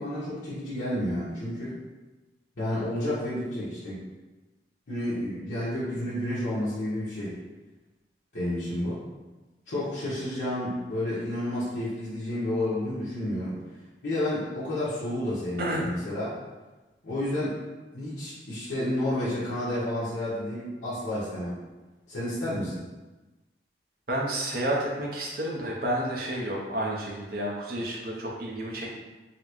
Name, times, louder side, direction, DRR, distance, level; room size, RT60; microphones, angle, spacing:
voice 1, 0.0-1.8 2.6-4.0 4.9-7.3 8.3-9.0 9.7-13.6 14.0-16.4 17.0-17.6 17.9-21.6 22.1-22.8, left 1 dB, 80° left, -12 dB, 1.1 m, -30 dB
voice 2, 15.6-15.9 24.1-28.9, right 1 dB, 55° right, -3 dB, 0.6 m, -30 dB
4.0 x 2.1 x 3.0 m, 1.2 s
head